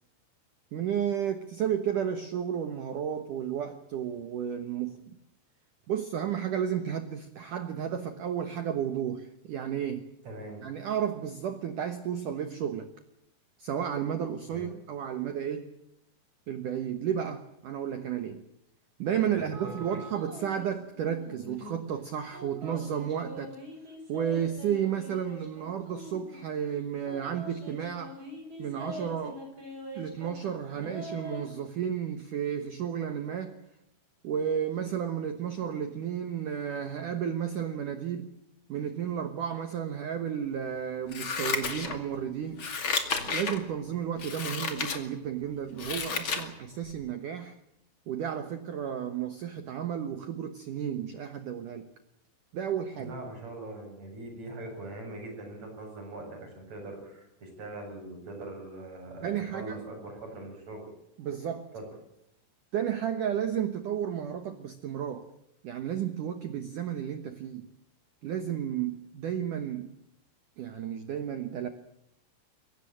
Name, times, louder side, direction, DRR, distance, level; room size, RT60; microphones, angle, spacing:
voice 1, 0.7-5.2 5.9-10.1 10.6-12.9 13.6-15.7 16.5-18.4 19.0-23.6 24.1-28.2 28.6-29.4 30.0-33.6 34.2-38.3 38.7-42.7 43.2-47.6 48.1-51.9 52.5-53.1 59.2-59.8 61.2-61.7 62.7-65.3 65.6-67.7 68.2-69.9 70.6-71.7, right 9 dB, 80° right, 9 dB, 1.8 m, -32 dB
voice 2, 10.2-10.6 14.5-14.7 19.3-20.0 53.0-60.9 61.7-61.9, right 2 dB, 35° right, 1 dB, 9.0 m, -42 dB
sound 1, 19.5-20.7 21.0-21.8 22.3-26.5 27.1-30.4 30.7-31.5, equal, 20° right, 7.4 m, -44 dB
Scissors, 41.1-42.2 42.6-43.6 44.2-45.0 45.4-46.5 46.9-47.0, left 5 dB, 40° left, 1.8 m, -32 dB
23.0 x 17.5 x 8.9 m, 0.81 s
omnidirectional pair, 5.7 m